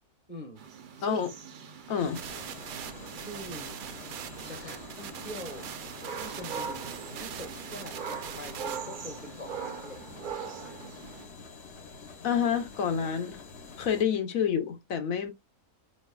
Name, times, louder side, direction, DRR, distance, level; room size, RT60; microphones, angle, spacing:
voice 1, 0.3-0.6 1.0-1.2 1.9-2.1 3.1-3.8 4.4-5.7 6.1-10.0 10.4-11.0 12.9-13.1 13.9-14.1, equal, 10° right, 0.9 m, -44 dB
sound 1, 0.6-11.3, right 6 dB, 50° right, 0.6 m, -42 dB
voice 2, 1.9-2.2 12.2-13.4 13.8-15.3, left 7 dB, 70° left, 1.2 m, -28 dB
sound 2, 2.0-14.0, left 4 dB, 50° left, 1.0 m, -47 dB
sound 3, 2.1-8.8, right 10 dB, 75° right, 1.1 m, -42 dB
4.8 x 3.2 x 2.2 m
omnidirectional pair, 1.5 m